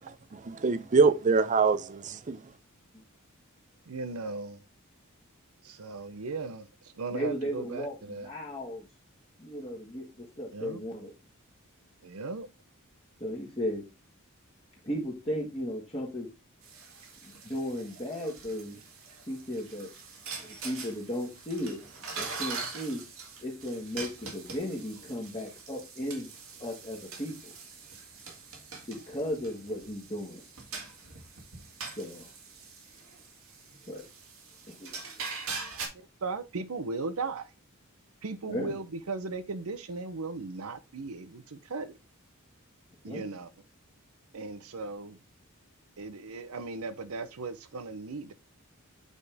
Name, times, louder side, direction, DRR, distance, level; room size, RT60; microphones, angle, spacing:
voice 1, 0.0-2.4, right 4 dB, 35° right, 0.5 m, -25 dB
voice 2, 3.9-4.6 5.6-6.7 7.0-8.3 10.5-10.8 12.0-12.5 36.2-37.5 38.2-42.0 43.0-43.5 44.3-45.2 46.0-48.3, right 3 dB, 85° right, 0.7 m, -37 dB
voice 3, 7.1-8.9 9.4-11.1 13.2-13.8 14.8-16.3 17.2-18.8 19.3-19.9 20.4-21.8 22.2-23.0 23.4-26.3 26.6-27.5 28.9-30.4 32.0-32.3 33.9-34.1 34.7-35.0 38.4-38.8 43.1-43.2, equal, 25° left, 1.8 m, -35 dB
sound 1, 16.6-35.9, right 4 dB, 70° right, 2.0 m, -43 dB
8.2 x 4.2 x 3.4 m
head